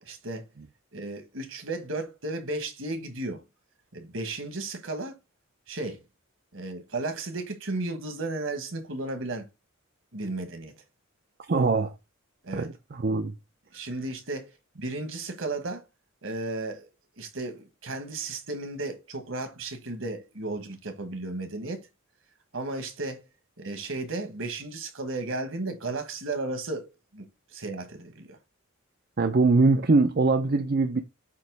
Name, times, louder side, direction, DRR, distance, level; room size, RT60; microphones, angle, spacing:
voice 1, 0.0-0.5 0.9-3.4 3.9-5.1 5.7-6.0 6.5-9.5 10.1-10.7 12.4-12.7 13.7-15.9 16.2-16.9 17.2-21.9 22.5-23.3 23.6-28.4, right 2 dB, 65° right, 1.6 m, -34 dB
voice 2, 11.5-11.9 12.6-12.7 13.0-13.3 29.2-31.0, right 3 dB, 45° right, 0.6 m, -22 dB
8.5 x 3.1 x 4.7 m
head